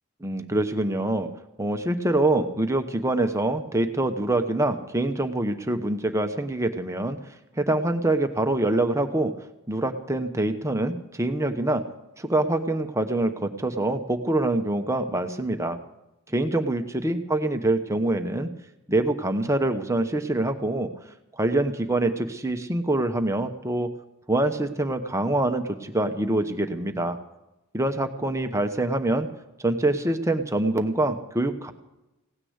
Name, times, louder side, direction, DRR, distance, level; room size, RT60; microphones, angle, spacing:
voice 1, 0.2-1.3 1.6-7.2 7.6-9.3 9.7-11.8 12.2-15.8 16.3-18.5 18.9-20.9 21.3-23.9 24.3-27.2 27.7-29.3 29.6-31.7, right 2 dB, 15° right, 7 dB, 1.0 m, -25 dB
17.0 x 9.8 x 8.1 m, 0.94 s
head